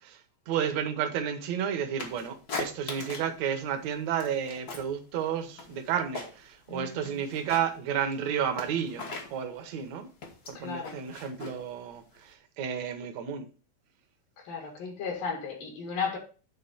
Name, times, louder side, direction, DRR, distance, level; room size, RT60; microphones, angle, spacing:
voice 1, 0.0-10.1 10.5-13.5, right 8 dB, 65° right, 2.0 m, -32 dB
sound 1, 2.0-3.4 3.7-5.0 5.3-6.6 6.9-12.3, left 3 dB, 50° left, 1.1 m, -40 dB
voice 2, 6.7-7.2 10.6-11.0 14.5-16.2, left 5 dB, 75° left, 3.6 m, -35 dB
9.6 x 3.7 x 5.4 m
omnidirectional pair, 3.9 m